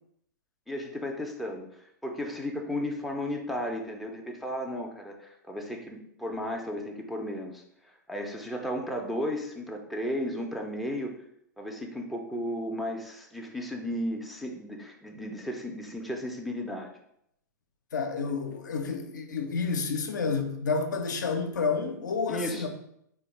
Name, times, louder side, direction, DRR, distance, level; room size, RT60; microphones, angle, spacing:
voice 1, 0.7-7.6 8.1-11.2 11.6-16.9 22.3-22.7, equal, ahead, 0.4 m, -34 dB
voice 2, 17.9-22.7, left 5 dB, 70° left, 0.4 m, -30 dB
3.3 x 2.2 x 3.1 m
figure-of-eight pair, 105°, 10 cm